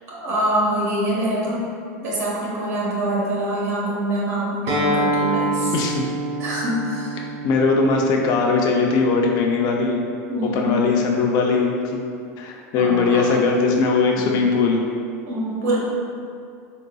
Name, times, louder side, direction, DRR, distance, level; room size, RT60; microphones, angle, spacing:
voice 1, 0.1-1.6 2.0-5.7 6.4-7.2 10.3-10.8 12.7-13.3 14.2-14.3 15.3-15.8, right 1 dB, 80° right, -7 dB, 1.4 m, -25 dB
Acoustic guitar, 4.7-9.9, right 1 dB, 60° right, 1.3 m, -27 dB
voice 2, 5.7-6.1 7.2-10.0 10.5-12.0 12.4-14.8, left 4 dB, 50° left, 1 dB, 0.5 m, -20 dB
3.8 x 3.8 x 2.3 m, 2.4 s
hypercardioid pair, 110°, 9 cm